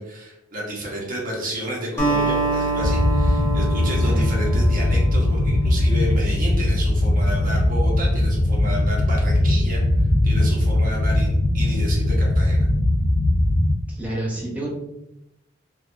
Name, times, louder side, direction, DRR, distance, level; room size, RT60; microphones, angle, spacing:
voice 1, 0.0-9.8 10.2-12.7, equal, 45° right, -2 dB, 1.0 m, -31 dB
Acoustic guitar, 2.0-6.5, right 2 dB, 15° left, 1.2 m, -26 dB
sound 1, 2.8-13.7, left 1 dB, 40° left, 0.4 m, -20 dB
voice 2, 13.9-14.7, right 1 dB, 10° right, -5 dB, 0.9 m, -29 dB
4.6 x 2.2 x 2.5 m, 0.87 s
head